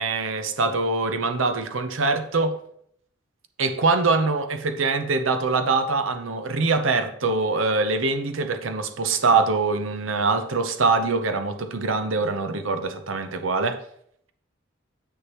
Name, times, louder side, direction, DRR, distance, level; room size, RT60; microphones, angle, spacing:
voice 1, 0.0-2.6 3.6-13.8, right 3 dB, 90° right, 0.8 m, -23 dB
7.9 x 6.4 x 3.0 m
head